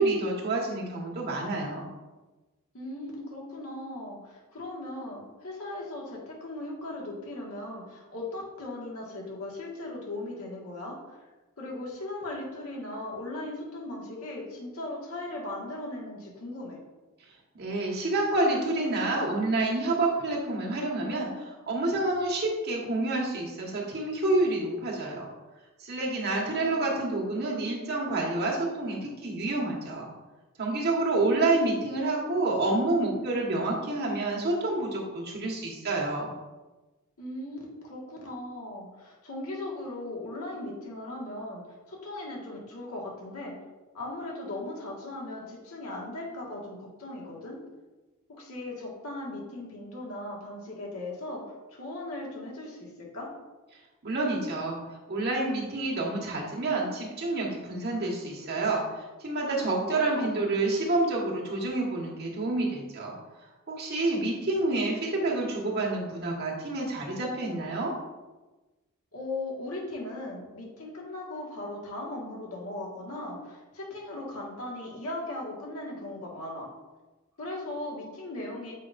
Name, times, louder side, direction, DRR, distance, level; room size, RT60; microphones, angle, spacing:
voice 1, 0.0-1.9 17.5-25.3 25.8-30.1 30.6-36.3 54.0-67.9, right 2 dB, 45° right, -3 dB, 1.4 m, -28 dB
voice 2, 2.7-11.2 11.6-16.8 26.3-26.9 37.2-41.6 41.9-43.5 43.9-47.6 48.3-53.3 59.5-60.3 69.1-76.7 77.4-78.7, left 2 dB, 75° left, -3 dB, 1.7 m, -38 dB
7.5 x 5.1 x 2.6 m, 1.2 s
head